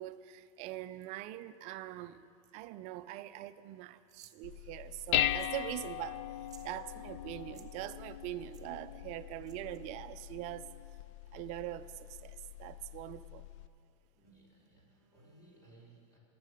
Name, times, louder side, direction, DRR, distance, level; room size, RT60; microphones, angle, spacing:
voice 1, 0.0-2.2 2.5-6.2 6.6-10.7 11.3-13.5, right 15 dB, 40° right, 13 dB, 0.5 m, -43 dB
sound 1, 4.1-4.4 5.3-5.7 5.9-6.0 6.3-6.7 7.4-7.7 8.5-8.6 9.4-9.8, right 9 dB, 20° right, 0.8 m, -58 dB
Dishes pots and pans, 4.4-13.7, left 13 dB, 60° left, 0.5 m, -39 dB
voice 2, 14.1-16.2, right 2 dB, 20° left, -3 dB, 4.4 m, -61 dB
20.0 x 7.7 x 6.4 m, 2.4 s
supercardioid pair, 135°, 17 cm